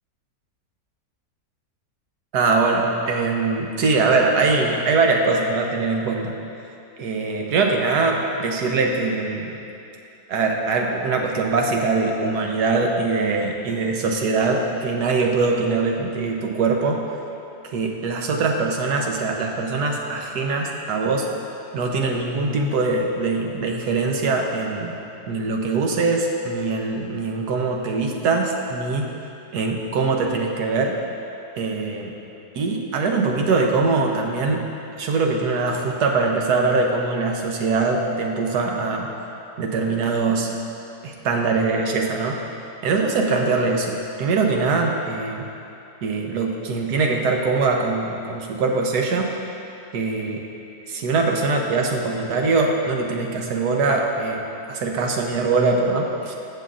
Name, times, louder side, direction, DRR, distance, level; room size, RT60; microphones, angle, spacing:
voice 1, 2.3-6.3 7.0-9.6 10.3-17.0 17.7-21.3 21.7-25.0 25.3-29.1 29.5-31.0 31.6-32.1 32.5-34.6 35.0-39.1 39.6-40.5 41.0-42.4 42.8-45.5 46.0-49.3 49.9-50.4 50.9-56.3, right 3 dB, 80° right, 1 dB, 1.4 m, -22 dB
14.5 x 7.6 x 2.5 m, 2.7 s
omnidirectional pair, 1.7 m